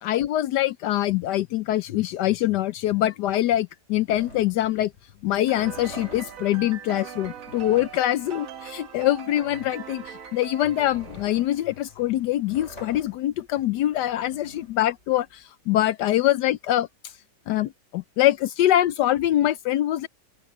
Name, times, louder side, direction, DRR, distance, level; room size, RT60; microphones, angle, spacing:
voice 1, 0.0-4.9 5.2-17.1 17.5-20.1, left 13 dB, 75° left, 1.2 m, -24 dB
sound 1, 4.1-15.4, equal, 40° left, 8.2 m, -46 dB
sound 2, 5.5-12.1, right 8 dB, 55° right, 1.4 m, -41 dB
open air
omnidirectional pair, 1.9 m